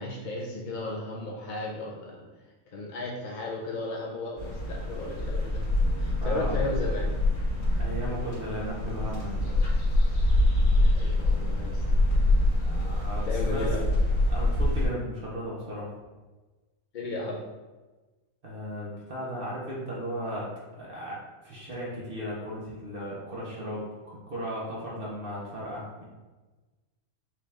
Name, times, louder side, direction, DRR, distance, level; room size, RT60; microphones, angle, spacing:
voice 1, 0.0-2.3 2.7-5.6 6.0-7.0 10.8-11.8 13.2-13.9 16.9-17.4, left 2 dB, 50° left, -3 dB, 0.6 m, -34 dB
sound 1, 4.4-14.9, left 1 dB, 90° left, 1.9 m, -25 dB
voice 2, 6.2-6.6 7.8-9.6 12.6-13.7 14.3-15.9 18.4-21.2 21.4-26.0, equal, 45° right, -6 dB, 1.1 m, -36 dB
5.6 x 2.5 x 3.4 m, 1.2 s
omnidirectional pair, 1.4 m